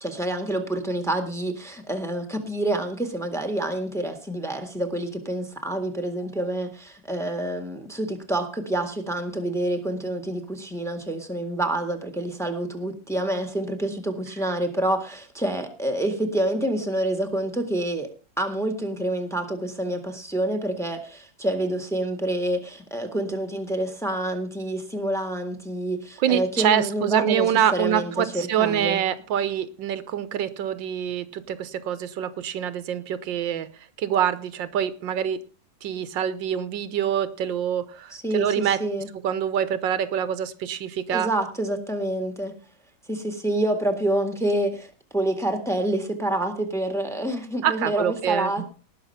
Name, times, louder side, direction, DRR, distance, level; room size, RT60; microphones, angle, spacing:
voice 1, 0.0-18.1 18.4-27.5 27.7-29.0 38.1-39.1 41.1-42.5 43.1-48.6, right 1 dB, ahead, 1.6 m, -27 dB
voice 2, 26.2-33.7 34.0-35.4 35.8-38.8 39.2-41.3 47.6-48.6, right 10 dB, 90° right, 1.6 m, -25 dB
19.0 x 6.5 x 5.6 m
omnidirectional pair, 1.9 m